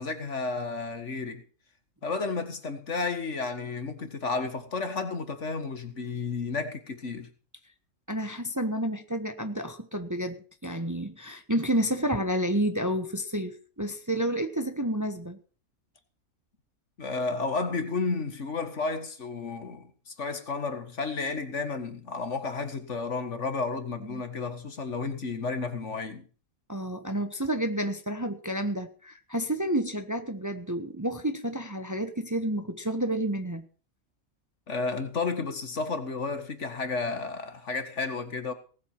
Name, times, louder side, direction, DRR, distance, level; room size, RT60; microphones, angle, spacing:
voice 1, 0.0-1.4 2.0-7.3 17.0-26.3 34.7-38.5, left 4 dB, 55° left, 2.1 m, -32 dB
voice 2, 8.1-15.4 24.1-24.2 26.7-33.6, right 1 dB, 15° right, 1.2 m, -30 dB
19.0 x 8.1 x 6.0 m
omnidirectional pair, 1.5 m